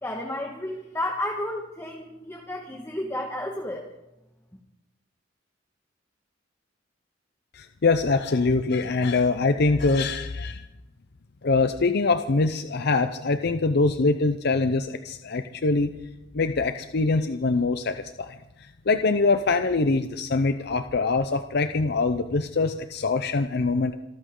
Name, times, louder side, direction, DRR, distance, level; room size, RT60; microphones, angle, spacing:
voice 1, 0.0-3.9, left 1 dB, 15° left, 1 dB, 1.6 m, -32 dB
voice 2, 7.5-10.7 11.4-15.9 16.3-18.4 18.9-23.9, left 3 dB, 60° left, 8 dB, 0.7 m, -23 dB
26.5 x 13.5 x 3.8 m, 0.92 s
head